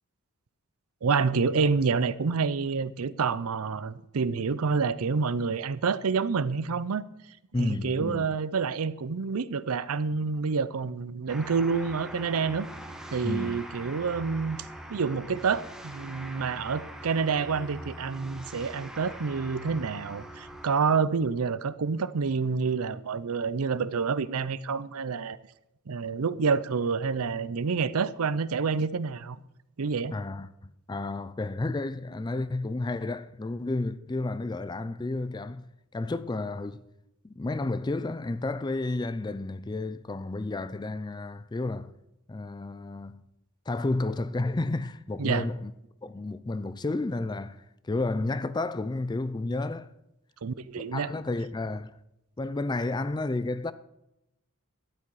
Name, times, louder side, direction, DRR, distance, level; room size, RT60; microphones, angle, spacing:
voice 1, 1.0-7.0 7.6-12.7 13.1-14.6 14.9-25.4 25.9-29.4 29.8-30.1 45.2-45.4 50.4-51.1, right 5 dB, 85° right, 0.6 m, -28 dB
voice 2, 7.5-8.3 13.2-13.6 30.1-36.8 37.2-41.9 42.3-43.2 43.7-45.7 46.0-49.9 50.8-51.9 52.4-53.7, left 2 dB, 20° left, 0.4 m, -31 dB
sound 1, 11.3-20.7, right 1 dB, 5° right, 1.3 m, -43 dB
12.0 x 10.0 x 4.8 m
head